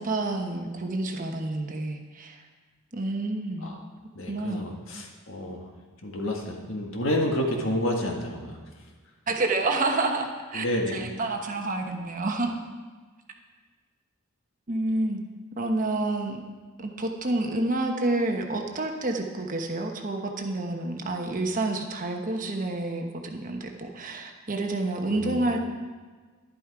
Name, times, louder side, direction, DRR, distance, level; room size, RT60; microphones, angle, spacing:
voice 1, 0.0-2.4 2.9-3.7 4.3-4.6 9.3-10.6 10.9-12.6 14.7-15.2 15.6-16.4 16.8-25.7, right 2 dB, 40° right, 3 dB, 1.1 m, -29 dB
voice 2, 4.1-5.6 6.0-8.6 10.5-11.0 25.1-25.6, left 1 dB, 65° left, 1 dB, 1.8 m, -29 dB
11.5 x 11.0 x 4.8 m, 1.4 s
head